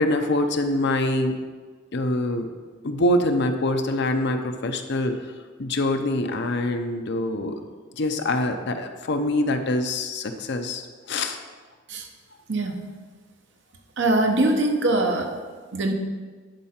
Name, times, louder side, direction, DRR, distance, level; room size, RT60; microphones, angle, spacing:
voice 1, 0.0-1.4 1.9-2.5 2.8-5.1 5.6-7.6 7.9-11.4, left 1 dB, 60° left, 6 dB, 0.7 m, -24 dB
voice 2, 12.5-12.8 14.0-15.3 15.7-15.9, right 2 dB, 65° right, 3 dB, 1.0 m, -22 dB
10.5 x 4.8 x 4.4 m, 1.4 s
head